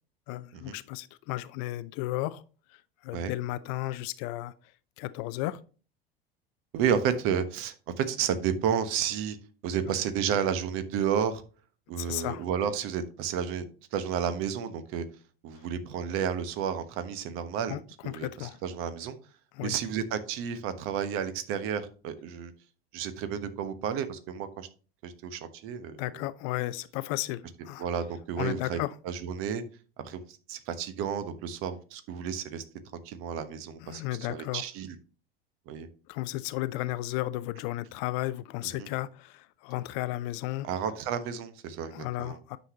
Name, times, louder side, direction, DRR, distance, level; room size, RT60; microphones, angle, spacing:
voice 1, 0.3-2.4 2.7-5.6 12.0-12.4 15.5-15.7 17.7-18.6 19.5-19.8 26.0-27.9 28.4-28.9 33.8-34.6 36.1-40.7 41.9-42.6, left 16 dB, 40° left, 0.5 m, -34 dB
voice 2, 6.7-9.4 9.6-11.4 11.9-13.6 13.9-15.0 15.4-17.8 18.0-19.2 19.6-22.5 22.9-24.7 25.0-26.0 27.8-28.8 29.0-29.6 30.0-30.2 30.5-32.6 33.0-34.0 34.3-34.9 35.7-35.9 38.6-38.9 40.6-42.4, right 8 dB, 45° right, 1.1 m, -31 dB
9.3 x 6.3 x 2.8 m
figure-of-eight pair, 75°, 31 cm